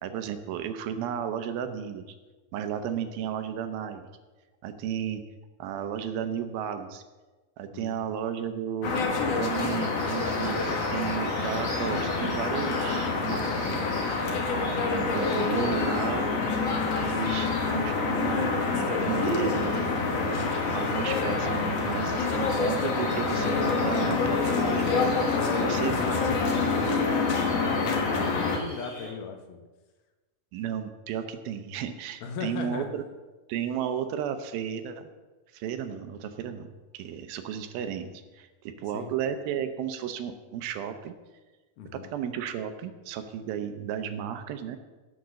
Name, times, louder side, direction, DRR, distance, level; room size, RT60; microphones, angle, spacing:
voice 1, 0.0-2.1 2.5-4.0 4.6-5.2 5.6-7.0 7.6-9.0 9.4-13.9 14.9-16.4 17.0-20.4 20.7-24.9 25.6-26.2 30.5-33.0 33.5-35.1 35.5-41.1 41.9-44.8, right 9 dB, 75° right, 8 dB, 2.5 m, -33 dB
voice 2, 7.7-8.1 25.3-27.7 28.0-29.6 32.2-32.9 38.9-39.1 41.8-42.1, left 6 dB, 75° left, 5 dB, 2.9 m, -37 dB
sound 1, 8.8-28.6, left 4 dB, 55° left, 1.9 m, -27 dB
sound 2, 9.5-29.1, equal, 35° left, 5.3 m, -45 dB
16.0 x 5.9 x 6.4 m, 1.2 s
omnidirectional pair, 4.5 m